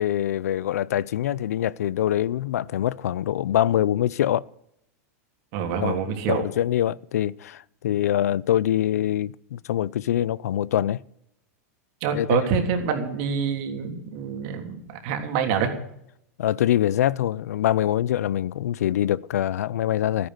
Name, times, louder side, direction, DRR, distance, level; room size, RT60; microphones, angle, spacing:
voice 1, 0.0-4.4 5.8-6.0 6.3-11.0 12.1-12.5 16.4-20.3, left 11 dB, 85° left, 0.5 m, -24 dB
voice 2, 5.5-6.4 12.0-15.7, right 6 dB, 55° right, 3.3 m, -26 dB
13.5 x 10.0 x 7.9 m
hypercardioid pair, 120°, 8 cm